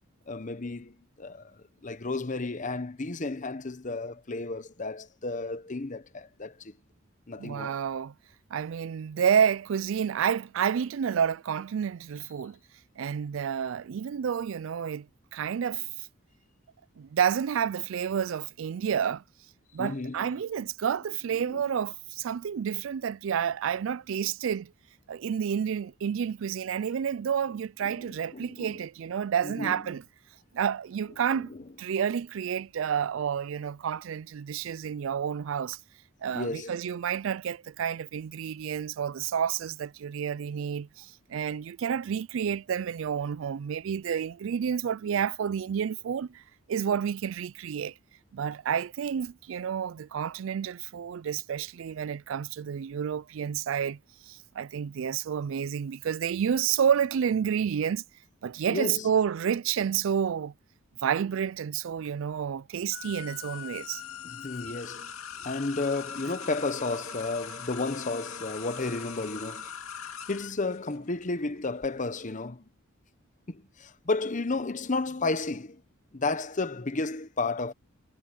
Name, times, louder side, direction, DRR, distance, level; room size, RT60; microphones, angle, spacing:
voice 1, 0.3-1.5 1.8-6.7 7.3-7.8 19.8-20.3 21.5-21.6 27.8-28.8 29.4-29.8 31.5-31.6 36.3-36.8 58.7-59.1 64.2-65.1 65.4-69.7 70.3-72.7 73.5-75.8 76.1-77.7, left 3 dB, 35° left, 0.9 m, -32 dB
voice 2, 7.4-8.1 8.5-12.6 13.0-15.1 15.3-15.9 17.0-19.2 19.7-24.7 25.1-30.0 30.5-31.5 31.8-35.8 36.2-46.4 46.7-47.9 48.3-54.0 54.3-58.0 58.4-60.5 61.0-64.0, right 8 dB, 65° right, 0.3 m, -29 dB
sound 1, 62.9-71.9, left 7 dB, 90° left, 2.5 m, -41 dB
head